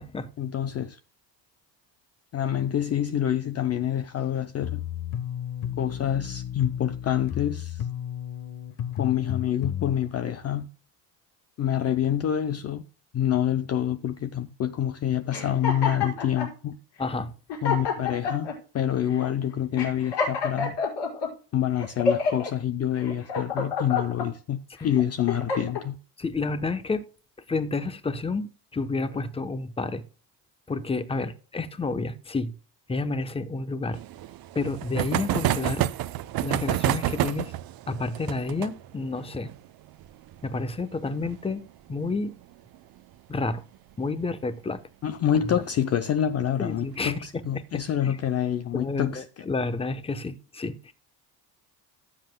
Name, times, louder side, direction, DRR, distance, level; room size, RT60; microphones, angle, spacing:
voice 1, 0.4-1.0 2.3-4.8 5.8-7.9 9.0-10.7 11.6-12.8 13.1-16.8 17.6-18.5 18.7-20.8 21.5-26.0 45.0-49.5, left 10 dB, 35° left, 0.6 m, -27 dB
sound 1, 4.6-9.9, left 10 dB, 55° left, 1.1 m, -33 dB
sound 2, 15.3-16.5 17.1-17.2 17.5-18.6 19.1-19.3 19.8-21.3 21.8-22.5 23.0-24.3 24.8-25.8, left 5 dB, 75° left, 5.2 m, -28 dB
voice 2, 17.0-17.3 24.8-24.9 26.2-27.0 27.5-30.0 30.7-32.5 32.9-34.0 34.5-35.8 36.4-37.5 37.9-39.5 40.4-41.6 41.9-42.3 43.3-43.6 44.0-44.8 46.6-47.2 47.5-48.2 48.7-50.9, left 3 dB, 15° left, 0.8 m, -30 dB
sound 3, 33.9-43.1 43.4-43.5 43.7-43.8 44.1-44.2 45.6-45.9 46.5-47.0, right 13 dB, 55° right, 0.7 m, -30 dB
17.0 x 7.7 x 2.2 m
cardioid pair, 135°, 43 cm